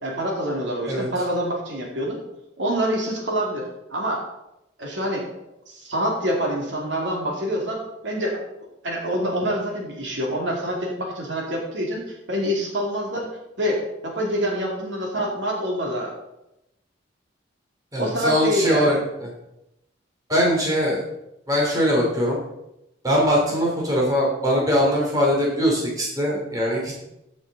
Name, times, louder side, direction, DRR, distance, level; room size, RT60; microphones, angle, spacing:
voice 1, 0.0-2.2 2.6-4.2 4.8-5.2 5.7-8.4 8.8-13.3 13.6-16.1 18.0-19.0, equal, 70° right, -1 dB, 2.4 m, -26 dB
voice 2, 17.9-19.3 20.3-21.0 21.5-22.4 23.0-26.9, equal, 20° right, -3 dB, 2.8 m, -21 dB
13.5 x 6.4 x 4.0 m, 0.87 s
head